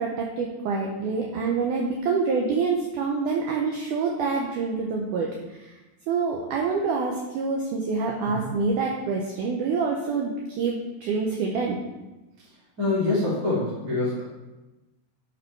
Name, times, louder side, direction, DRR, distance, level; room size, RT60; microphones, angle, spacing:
voice 1, 0.0-5.7 6.1-11.8, right 4 dB, 85° right, 0 dB, 1.8 m, -26 dB
voice 2, 12.8-14.2, left 2 dB, 25° right, -9 dB, 2.4 m, -25 dB
7.2 x 5.2 x 4.5 m, 1.1 s
omnidirectional pair, 4.5 m